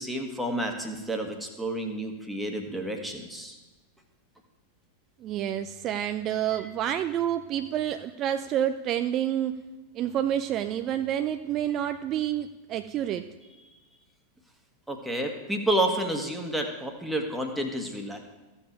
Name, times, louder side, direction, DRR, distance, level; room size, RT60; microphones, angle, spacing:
voice 1, 0.0-3.5 14.9-18.2, right 1 dB, ahead, 2 dB, 1.6 m, -30 dB
voice 2, 5.2-9.6 9.9-13.3, right 10 dB, 35° right, 10 dB, 0.4 m, -28 dB
14.5 x 7.1 x 4.5 m, 1.1 s
figure-of-eight pair, 90°, 0 cm